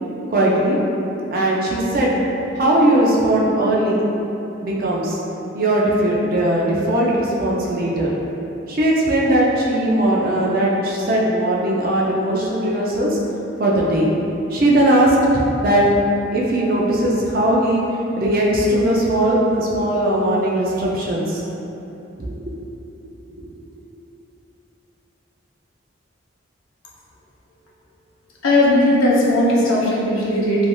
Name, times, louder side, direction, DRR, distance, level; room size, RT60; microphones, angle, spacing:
voice 1, 0.3-0.8 1.3-2.2 2.6-4.0 4.6-5.2 5.5-8.1 8.7-13.2 13.6-14.1 14.5-15.2 15.6-15.9 16.3-17.8 18.2-21.4 22.2-22.7 23.5-23.6, right 1 dB, 45° right, -4 dB, 0.4 m, -19 dB
voice 2, 28.4-30.7, left 1 dB, 85° left, -5 dB, 0.6 m, -17 dB
3.2 x 2.5 x 2.2 m, 3.0 s
head